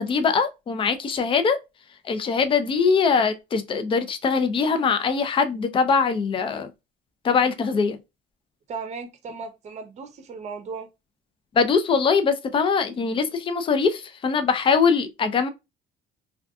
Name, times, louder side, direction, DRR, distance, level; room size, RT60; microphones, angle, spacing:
voice 1, 0.0-1.6 2.0-6.7 7.2-8.0 11.6-15.5, left 5 dB, 30° left, 0.4 m, -22 dB
voice 2, 8.7-10.9, right 4 dB, 40° right, 0.6 m, -36 dB
2.5 x 2.3 x 2.3 m
cardioid pair, 110°, 17 cm